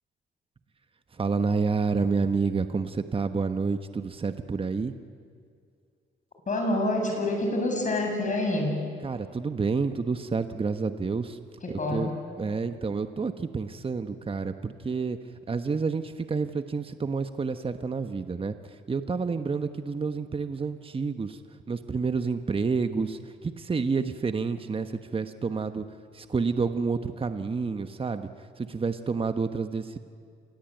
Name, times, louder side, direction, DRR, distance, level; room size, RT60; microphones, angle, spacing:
voice 1, 1.1-5.0 9.0-11.4 11.7-12.1 12.4-15.2 15.5-21.4 21.7-25.8 26.1-28.3 28.6-30.0, right 4 dB, 25° right, 9 dB, 1.2 m, -29 dB
voice 2, 6.5-8.9 11.6-12.1, left 1 dB, 40° left, 2 dB, 7.9 m, -27 dB
27.5 x 21.5 x 9.1 m, 2.2 s
cardioid pair, 90°, 20 cm